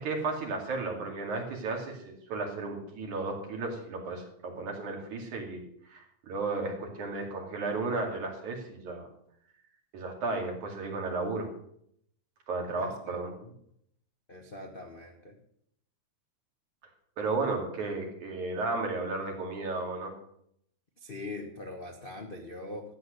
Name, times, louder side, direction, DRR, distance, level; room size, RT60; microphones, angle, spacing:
voice 1, 0.0-9.1 9.9-11.5 12.5-13.3 17.2-20.1, right 3 dB, 85° right, 1 dB, 3.9 m, -34 dB
voice 2, 12.8-13.2 13.4-13.5 14.3-15.4 21.0-22.9, left 2 dB, 85° left, 1 dB, 0.4 m, -42 dB
13.0 x 8.3 x 6.6 m, 0.70 s
omnidirectional pair, 3.3 m